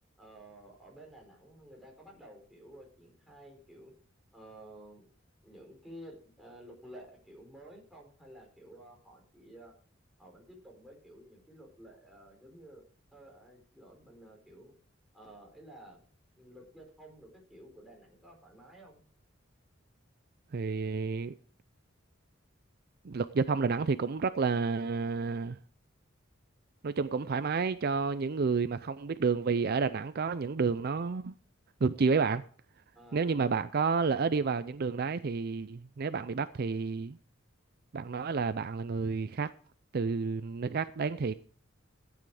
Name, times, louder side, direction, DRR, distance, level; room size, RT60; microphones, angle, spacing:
voice 1, 0.2-3.9 4.3-5.1 5.4-9.7 10.2-12.8 13.1-14.7 15.1-16.0 16.4-19.0 32.9-33.4, right 1 dB, ahead, 4.5 m, -52 dB
voice 2, 20.5-21.3 23.0-25.6 26.8-31.3 31.8-32.4 33.1-37.2 37.9-39.5 39.9-41.3, right 4 dB, 50° right, 0.5 m, -30 dB
14.0 x 9.2 x 4.9 m
head